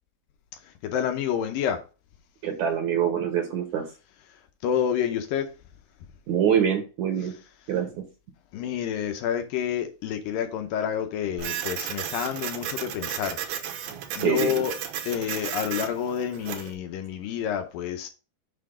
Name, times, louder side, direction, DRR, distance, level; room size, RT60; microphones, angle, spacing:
voice 1, 0.5-1.8 4.3-5.5 8.5-13.4 14.2-14.8 15.1-18.1, left 9 dB, 75° left, 2.3 m, -29 dB
voice 2, 2.4-3.9 6.3-7.3 7.7-8.0 14.1-14.7, right 8 dB, 65° right, 2.0 m, -25 dB
Printer, 11.4-16.7, right 9 dB, 85° right, 2.9 m, -34 dB
6.8 x 5.7 x 3.7 m
omnidirectional pair, 4.3 m